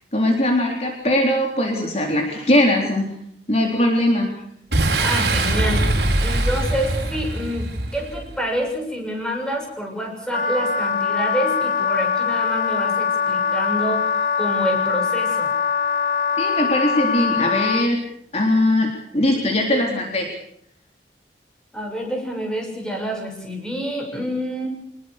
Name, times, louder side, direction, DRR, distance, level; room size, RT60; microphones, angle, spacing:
voice 1, 0.1-3.1 3.5-4.3 16.4-18.0 18.3-20.3, left 1 dB, 35° left, 1 dB, 3.8 m, -20 dB
Boom, 4.7-8.3, right 2 dB, 65° right, 4.7 m, -22 dB
voice 2, 5.0-15.5 21.7-24.7, equal, 5° left, 1 dB, 6.9 m, -27 dB
Wind instrument woodwind instrument, 10.3-17.9, left 6 dB, 55° left, 1.8 m, -22 dB
26.0 x 21.0 x 6.7 m, 0.68 s
head